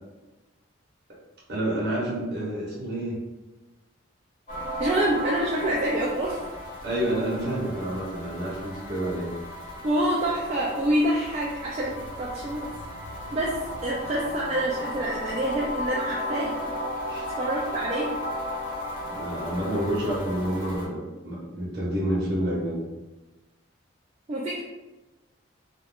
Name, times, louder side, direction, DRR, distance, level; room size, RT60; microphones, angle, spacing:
voice 1, 1.5-3.2 6.8-9.3 17.1-17.3 19.1-22.8, right 1 dB, 55° right, -5 dB, 0.9 m, -29 dB
sound 1, 4.5-20.9, left 1 dB, 40° left, 1.0 m, -35 dB
voice 2, 4.8-6.4 9.8-12.7 13.3-13.6 13.8-16.6 17.4-18.1 24.3-24.6, right 1 dB, 35° right, -4 dB, 0.3 m, -26 dB
2.5 x 2.3 x 3.3 m, 1.1 s
head